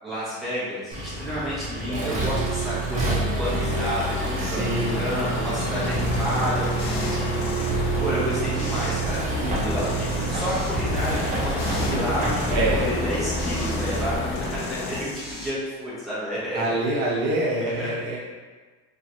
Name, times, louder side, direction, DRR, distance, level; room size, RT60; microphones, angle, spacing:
voice 1, 0.0-7.7 8.0-16.7 17.6-17.9, equal, ahead, -10 dB, 0.8 m, -31 dB
Accelerating revving vroom, 0.9-14.1, right 2 dB, 25° right, 0.5 m, -28 dB
voice 2, 1.7-2.6 4.4-5.1 12.5-12.9 14.8-15.0 16.5-18.2, right 2 dB, 65° right, -5 dB, 0.7 m, -27 dB
sound 1, 3.4-15.0, left 3 dB, 45° left, 0.4 m, -32 dB
sound 2, 5.9-9.2 9.5-14.0 14.3-15.5, left 2 dB, 85° left, 0.8 m, -34 dB
3.0 x 2.4 x 2.6 m, 1.4 s
cardioid pair, 150°, 30 cm